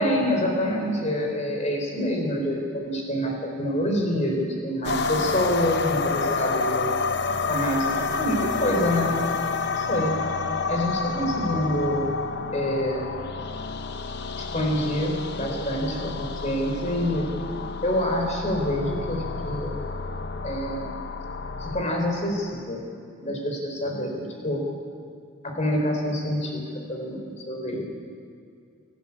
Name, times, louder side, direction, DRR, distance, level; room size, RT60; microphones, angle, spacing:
voice 1, 0.0-6.9 7.5-9.2 9.8-10.2 10.7-12.1 12.5-13.1 14.3-17.2 17.8-19.8 20.4-20.9 21.6-22.8 23.2-24.6 25.4-27.8, equal, 35° left, 1 dB, 4.1 m, -26 dB
sound 1, 4.8-21.8, left 4 dB, 50° left, 0.8 m, -29 dB
26.5 x 12.0 x 8.6 m, 2.4 s
head